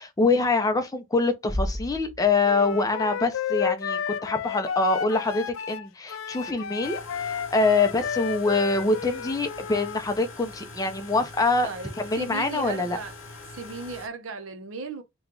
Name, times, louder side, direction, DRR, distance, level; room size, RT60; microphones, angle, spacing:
voice 1, 0.0-11.7 12.0-13.0, left 3 dB, 15° left, 0.5 m, -25 dB
Bass drum, 1.5-3.2, left 1 dB, 20° right, 1.0 m, -33 dB
Wind instrument woodwind instrument, 2.4-10.0, left 7 dB, 80° left, 0.4 m, -32 dB
sound 1, 6.8-14.1, left 3 dB, 65° left, 0.9 m, -43 dB
voice 2, 11.6-13.1 13.5-15.0, right 4 dB, 80° right, 0.7 m, -36 dB
2.9 x 2.3 x 3.7 m
head